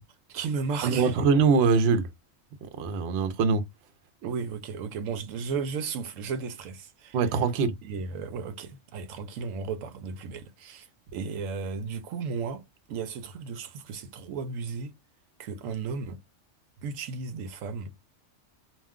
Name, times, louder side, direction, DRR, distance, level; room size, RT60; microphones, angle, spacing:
voice 1, 0.3-1.3 4.2-7.2 7.8-12.6 12.9-14.9 15.4-16.2 16.8-17.9, right 5 dB, 85° right, 1.0 m, -34 dB
voice 2, 0.8-2.1 2.8-3.6 7.1-7.7, right 5 dB, 65° right, 0.8 m, -23 dB
2.5 x 2.1 x 3.5 m
omnidirectional pair, 1.3 m